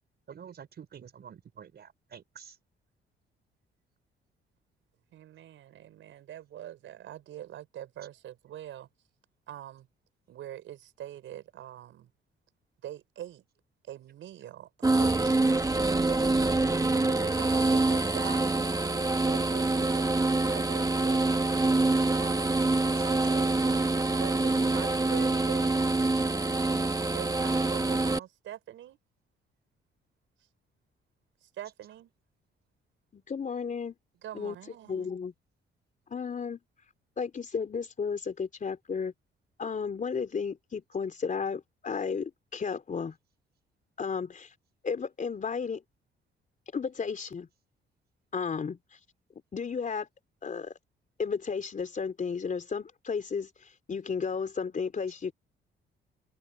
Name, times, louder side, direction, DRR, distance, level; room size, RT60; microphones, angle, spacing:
voice 1, 0.3-2.6 23.0-23.1, right 7 dB, 55° right, 5.5 m, -48 dB
voice 2, 5.1-8.9 9.5-9.9 10.3-12.1 12.8-13.4 13.8-16.6 16.9-18.7 19.2-22.6 23.0-25.7 27.1-29.0 31.4-32.1 34.2-35.2, right 12 dB, 80° right, 6.2 m, -44 dB
sound 1, 14.8-28.2, right 2 dB, 15° right, 1.4 m, -26 dB
voice 3, 33.1-34.0 34.3-34.6 34.9-35.3 36.1-36.6 37.2-39.1 39.6-43.2 44.0-44.5 44.8-45.8 46.7-47.5 48.3-48.8 49.5-50.1 50.4-50.7 51.2-53.5 53.9-55.3, left 5 dB, 40° left, 3.6 m, -33 dB
cardioid pair, 90°, 20 cm